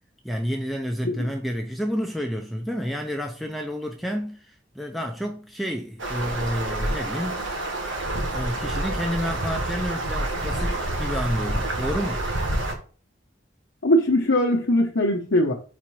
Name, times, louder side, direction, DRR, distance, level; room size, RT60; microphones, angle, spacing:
voice 1, 0.2-7.6 8.3-12.3, equal, ahead, 0.6 m, -30 dB
sound 1, 6.0-12.7, right 1 dB, 80° right, 1.5 m, -28 dB
voice 2, 13.8-15.5, left 1 dB, 75° left, 1.0 m, -21 dB
5.1 x 4.3 x 4.6 m
head